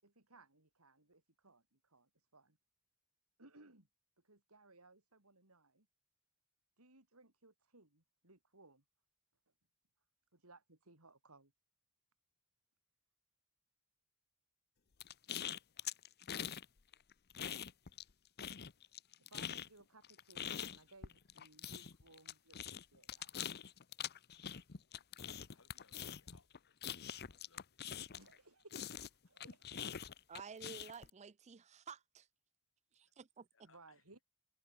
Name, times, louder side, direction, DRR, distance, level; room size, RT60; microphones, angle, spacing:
voice 1, 0.0-2.6 3.4-3.9 4.2-5.9 6.8-8.8 10.3-11.5 19.2-23.3 28.1-30.1 33.6-34.2, right 2 dB, 70° right, 4.7 m, -63 dB
sound 1, 15.0-16.6 16.9-18.1 18.4-28.4 28.7-31.1, left 9 dB, 45° left, 0.8 m, -44 dB
voice 2, 25.5-27.8 33.5-34.0, left 4 dB, 60° left, 5.6 m, -71 dB
voice 3, 30.3-32.3 32.9-33.5, right 6 dB, 30° right, 0.5 m, -52 dB
head